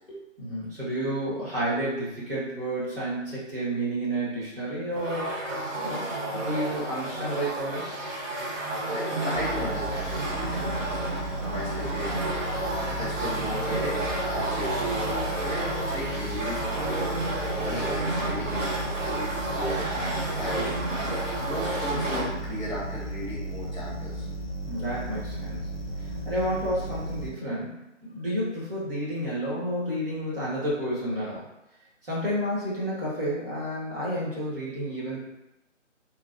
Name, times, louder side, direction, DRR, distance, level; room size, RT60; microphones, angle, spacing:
voice 1, 0.4-5.5 5.8-8.0 17.6-17.8 24.6-25.6 26.0-31.4 32.0-35.2, right 1 dB, 45° right, -8 dB, 1.5 m, -31 dB
sound 1, 5.0-22.3, right 1 dB, 80° right, 0.9 m, -31 dB
voice 2, 8.8-11.0 11.4-12.1 12.9-17.2 17.6-20.1 20.4-21.1 21.4-24.3, left 1 dB, ahead, -19 dB, 0.7 m, -36 dB
sound 2, 9.4-27.3, right 1 dB, 55° left, 0.7 m, -35 dB
3.2 x 2.4 x 2.5 m, 0.94 s
figure-of-eight pair, 160°, 38 cm